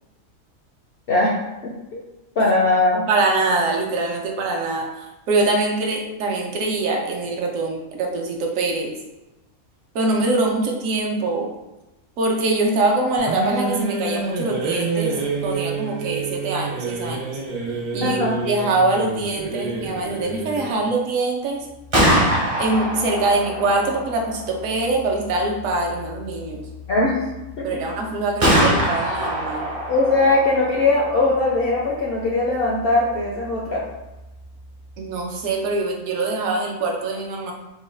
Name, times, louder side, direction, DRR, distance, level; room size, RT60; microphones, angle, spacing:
voice 1, 1.6-2.0 2.4-3.1 18.0-18.4 26.9-27.2 27.6-27.7 29.9-33.8, left 2 dB, 70° left, -3 dB, 0.5 m, -20 dB
voice 2, 3.1-8.9 9.9-11.5 12.2-15.2 15.4-17.3 17.9-18.2 18.5-21.7 22.6-26.6 27.6-29.7 35.0-37.5, right 2 dB, 70° right, 0 dB, 1.0 m, -23 dB
sound 1, 13.2-20.9, right 4 dB, 90° right, 1.2 m, -28 dB
Gunshot gunfire, 21.7-35.5, equal, 40° right, 0.5 m, -26 dB
3.8 x 2.2 x 3.2 m, 1.0 s
omnidirectional pair, 1.5 m